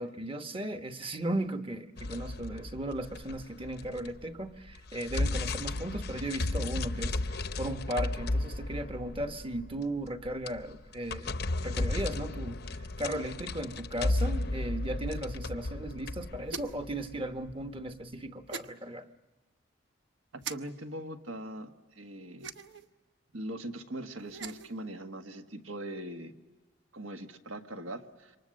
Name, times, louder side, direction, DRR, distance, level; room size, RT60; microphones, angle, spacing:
voice 1, 0.0-11.4 11.6-19.1, right 1 dB, 25° right, 8 dB, 1.1 m, -36 dB
sound 1, 2.0-4.3 4.7-17.7, left 2 dB, 55° left, 0.7 m, -34 dB
sound 2, 16.5-16.9 18.5-18.7 20.4-20.6 22.4-22.9 24.2-24.7, right 5 dB, 60° right, 0.9 m, -40 dB
voice 2, 20.3-22.5 23.3-26.3 26.9-28.4, right 1 dB, 80° right, 6 dB, 1.6 m, -41 dB
27.5 x 24.0 x 6.5 m, 1.3 s
head